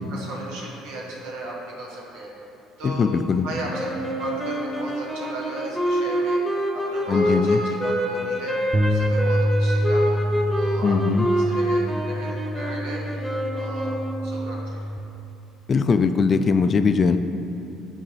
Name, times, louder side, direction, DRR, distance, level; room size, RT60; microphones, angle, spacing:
voice 1, 0.1-2.3 2.8-3.1 3.4-6.4 6.7-8.5 8.8-10.2 10.5-14.8, right 1 dB, 85° right, -4 dB, 1.4 m, -36 dB
voice 2, 2.8-3.5 7.1-7.6 10.8-11.3 15.7-17.2, left 5 dB, 35° left, 10 dB, 0.3 m, -20 dB
sound 1, 3.7-14.5, equal, ahead, 1.0 m, -26 dB
sound 2, 8.7-15.0, equal, 25° right, 0.5 m, -26 dB
10.5 x 3.6 x 3.3 m, 2.8 s
supercardioid pair, 95°, 0 cm